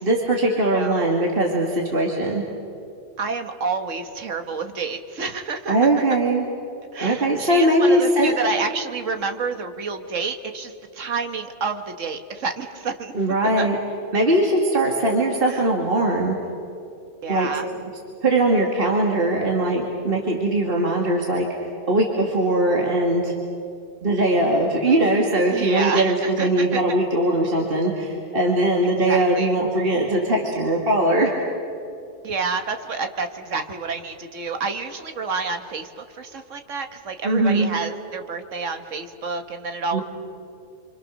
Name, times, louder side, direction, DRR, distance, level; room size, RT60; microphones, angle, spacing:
voice 1, 0.0-2.4 5.7-6.4 7.0-8.3 13.1-13.8 14.1-16.4 17.3-17.5 18.2-21.5 21.9-23.3 24.0-31.3 37.2-37.7 39.9-40.0, right 1 dB, 50° right, 0 dB, 2.3 m, -20 dB
voice 2, 0.7-1.2 3.2-5.9 6.9-13.1 13.6-13.7 15.5-15.6 17.2-17.7 25.5-26.8 28.8-29.6 32.2-40.0, right 4 dB, 90° right, 7 dB, 1.7 m, -29 dB
28.5 x 25.0 x 6.4 m, 2.5 s
omnidirectional pair, 1.3 m